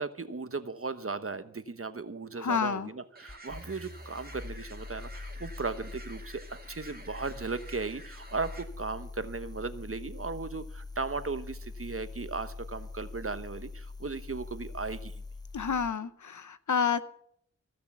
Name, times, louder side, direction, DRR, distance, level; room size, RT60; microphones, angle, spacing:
voice 1, 0.0-15.2, right 4 dB, 50° right, 11 dB, 1.1 m, -36 dB
voice 2, 2.4-2.9 15.5-17.0, left 6 dB, 90° left, 14 dB, 0.8 m, -29 dB
sound 1, 3.2-8.6, right 2 dB, 30° right, 2.2 m, -51 dB
sound 2, 3.3-16.0, left 3 dB, 15° left, 0.5 m, -43 dB
15.5 x 6.7 x 8.4 m, 0.68 s
wide cardioid pair, 40°, 29 cm